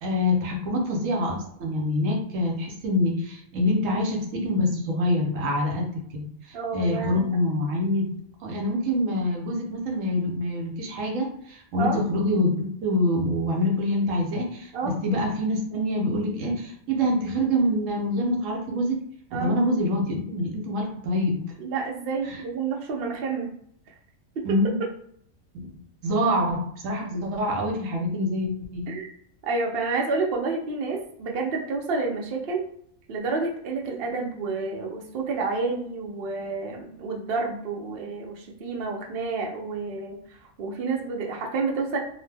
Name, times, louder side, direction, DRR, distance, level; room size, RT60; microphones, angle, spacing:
voice 1, 0.0-8.1 8.4-19.0 19.3-21.4 22.3-22.4 24.4-24.8 25.5-25.7 26.0-28.9, left 1 dB, 75° right, 1 dB, 1.0 m, -26 dB
voice 2, 6.5-7.2 11.8-12.0 14.7-14.9 19.3-19.5 21.6-23.5 24.4-24.5 28.9-29.1 29.4-32.6 33.1-40.2 40.6-42.0, right 4 dB, 60° right, 0 dB, 0.7 m, -29 dB
2.7 x 2.1 x 3.3 m, 0.66 s
omnidirectional pair, 1.4 m